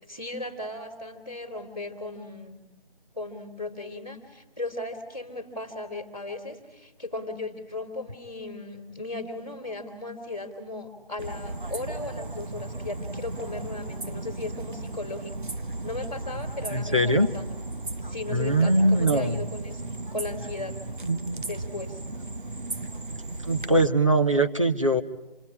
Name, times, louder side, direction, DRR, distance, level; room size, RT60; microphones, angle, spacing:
voice 1, 0.1-2.6 3.1-15.4 15.8-17.6 18.1-20.8 21.4-22.0, left 2 dB, 5° right, -16 dB, 1.9 m, -36 dB
sound 1, 11.2-23.9, right 2 dB, 60° right, 0.9 m, -36 dB
voice 2, 16.7-17.3 18.3-19.4 21.0-21.4 23.5-25.0, right 1 dB, 35° right, 3 dB, 1.0 m, -22 dB
27.5 x 20.5 x 9.7 m, 0.97 s
figure-of-eight pair, 180°, 29 cm